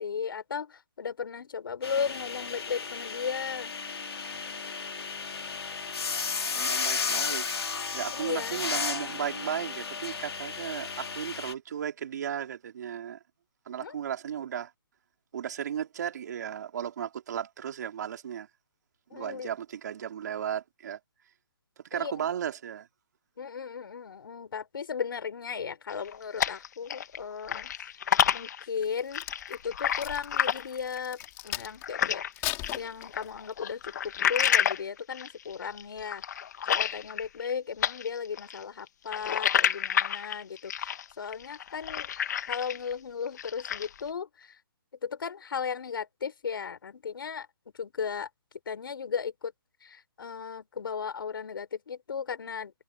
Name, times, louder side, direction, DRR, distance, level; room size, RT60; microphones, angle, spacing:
voice 1, 0.0-3.7 8.1-8.6 13.8-14.0 19.1-19.5 21.9-22.3 23.4-27.7 28.3-36.2 36.7-42.1 42.5-44.6 45.0-47.5 47.8-48.3 48.7-49.5 49.8-52.7, left 6 dB, 60° left, 5.3 m, -36 dB
sound 1, 1.8-11.5, left 5 dB, 90° left, 2.7 m, -34 dB
voice 2, 6.5-7.5 7.9-13.2 13.7-14.7 15.3-18.5 19.1-21.0 21.9-22.9, right 9 dB, 45° right, 4.0 m, -35 dB
sound 2, 25.9-27.2 27.4-32.3 32.6-37.5 37.8-42.9 43.3-44.0, left 9 dB, 45° left, 1.8 m, -29 dB
Crack, 28.8-31.9 32.3-33.5 34.1-34.3, left 23 dB, 20° left, 3.5 m, -38 dB
hypercardioid pair, 165°, 13 cm